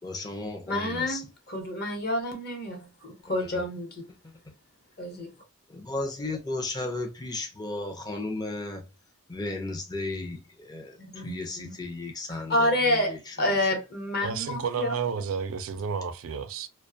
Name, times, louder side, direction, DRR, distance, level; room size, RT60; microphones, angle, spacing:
voice 1, 0.0-1.2 3.3-3.6 4.1-4.5 5.7-8.9 9.3-13.8, left 2 dB, 20° left, 0.4 m, -35 dB
voice 2, 0.7-4.0 5.0-5.3 11.0-11.7 12.3-14.9, left 1 dB, 45° left, 0.9 m, -29 dB
voice 3, 14.2-16.7, right 6 dB, 65° right, 0.4 m, -31 dB
2.4 x 2.2 x 2.6 m
head